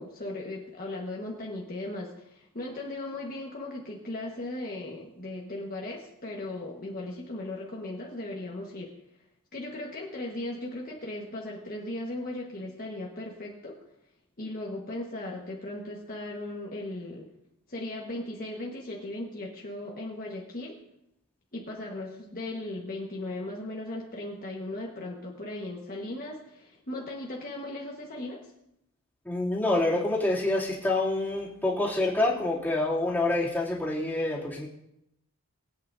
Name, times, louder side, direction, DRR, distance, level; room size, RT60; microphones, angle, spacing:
voice 1, 0.0-8.9 9.5-13.8 14.4-17.2 17.7-20.8 21.5-28.4, left 1 dB, 40° left, -2 dB, 1.4 m, -37 dB
voice 2, 29.2-34.7, left 2 dB, 10° left, -7 dB, 2.7 m, -27 dB
22.0 x 8.8 x 2.7 m, 0.81 s
head